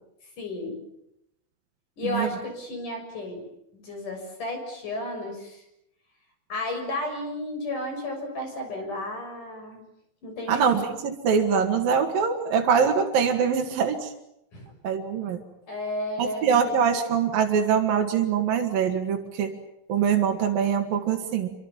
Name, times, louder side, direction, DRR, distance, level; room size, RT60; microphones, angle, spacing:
voice 1, 0.4-0.8 2.0-3.4 3.7-5.6 6.5-9.8 10.2-10.9 14.5-14.7 15.7-16.8, left 1 dB, 40° left, 4 dB, 7.9 m, -33 dB
voice 2, 10.5-14.1 14.8-15.4 16.2-19.5 19.9-21.5, right 7 dB, 55° right, 2 dB, 3.2 m, -23 dB
27.0 x 25.0 x 7.4 m, 0.80 s
omnidirectional pair, 5.7 m